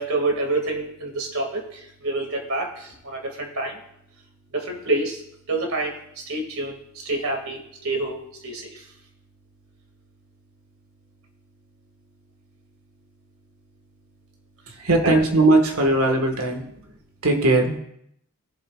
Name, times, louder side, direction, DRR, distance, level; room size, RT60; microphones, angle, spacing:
voice 1, 0.0-3.8 4.5-5.2 5.5-6.7 7.0-8.8 15.0-15.2, right 2 dB, 75° right, 1 dB, 2.3 m, -27 dB
voice 2, 14.8-16.7 17.2-17.8, right 2 dB, 90° right, 4 dB, 1.7 m, -19 dB
18.5 x 7.5 x 2.5 m, 0.75 s
head